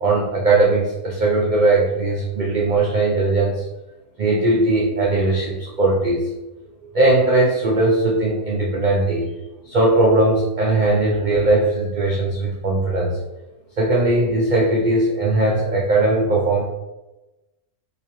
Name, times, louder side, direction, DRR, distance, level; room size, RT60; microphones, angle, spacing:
voice 1, 0.0-3.6 4.2-6.2 6.9-9.2 9.7-13.1 13.8-16.6, right 2 dB, 85° right, -3 dB, 0.4 m, -19 dB
3.5 x 2.9 x 2.9 m, 1.0 s
omnidirectional pair, 1.5 m